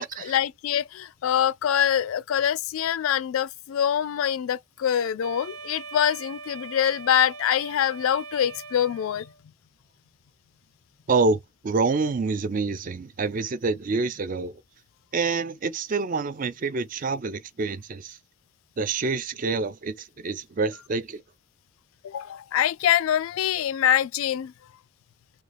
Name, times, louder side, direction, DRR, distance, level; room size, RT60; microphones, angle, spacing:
voice 1, 0.0-9.3 22.0-24.5, left 9 dB, 75° left, 0.3 m, -24 dB
Wind instrument woodwind instrument, 5.2-9.4, right 4 dB, 85° right, 0.8 m, -41 dB
voice 2, 11.1-11.4 11.6-14.5 15.1-18.2 18.8-21.2, right 4 dB, 40° right, 0.4 m, -27 dB
3.7 x 2.3 x 3.3 m
head